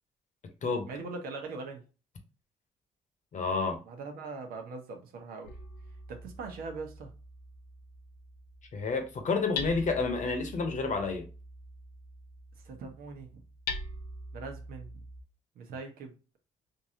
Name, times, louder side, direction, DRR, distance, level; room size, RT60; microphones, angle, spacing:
voice 1, 0.9-1.8 3.9-5.5 6.1-7.1 12.6-13.4 14.3-14.9 15.6-16.1, right 4 dB, 75° right, 1.0 m, -41 dB
voice 2, 3.3-3.8 8.7-11.3, left 4 dB, 55° left, 1.0 m, -30 dB
Hammer, 5.4-15.2, left 3 dB, 80° left, 0.6 m, -43 dB
3.7 x 2.7 x 2.8 m
supercardioid pair, 50°, 15 cm